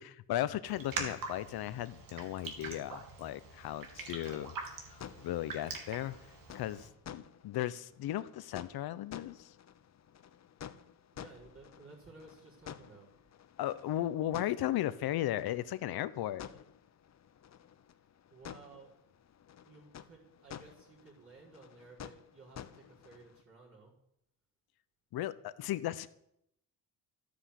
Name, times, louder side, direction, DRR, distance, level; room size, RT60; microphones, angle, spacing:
voice 1, 0.0-4.6 4.9-6.2 6.5-9.5 13.6-16.5 25.1-26.1, left 13 dB, 80° left, 15 dB, 1.0 m, -36 dB
Raindrop, 0.6-6.9, right 4 dB, 65° right, 3.3 m, -44 dB
sound 1, 3.6-23.4, left 9 dB, 45° left, 0.9 m, -52 dB
voice 2, 11.1-13.1 18.3-18.9 19.6-23.9, right 3 dB, 35° right, -4 dB, 4.9 m, -56 dB
14.0 x 9.8 x 8.3 m, 0.75 s
cardioid pair, 135°, 36 cm